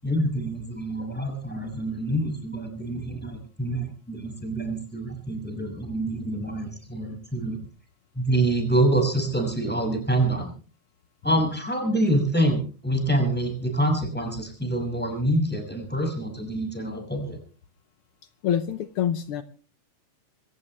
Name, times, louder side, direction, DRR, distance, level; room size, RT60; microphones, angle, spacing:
voice 1, 0.0-7.6 8.1-10.5 11.2-17.4, right 1 dB, 5° left, 3 dB, 6.1 m, -26 dB
voice 2, 18.4-19.4, left 9 dB, 85° left, 10 dB, 1.2 m, -26 dB
26.5 x 15.0 x 3.3 m, 0.39 s
omnidirectional pair, 3.8 m